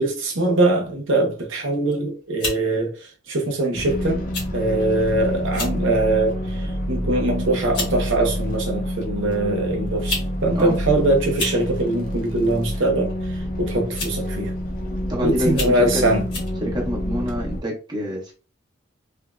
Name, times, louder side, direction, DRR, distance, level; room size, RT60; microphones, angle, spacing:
voice 1, 0.0-4.3 4.5-14.5 15.2-16.2, right 2 dB, 75° right, 0.8 m, -22 dB
sound 1, 1.7-2.0 2.4-2.6 3.5-3.6 4.3-4.5 4.8-4.9 5.4-5.8 6.3-6.6 7.3-7.4 7.7-7.9 9.0-9.1 9.9-10.3 10.6-10.7 11.2-11.6 12.8-13.1 13.9-14.3 14.8-14.9 15.5-15.8 16.3-16.5, left 3 dB, 65° left, 1.3 m, -29 dB
sound 2, 3.7-17.6, equal, 40° left, 0.6 m, -28 dB
voice 2, 15.1-16.0 16.6-18.3, equal, 20° right, 0.9 m, -26 dB
3.4 x 2.0 x 2.4 m
head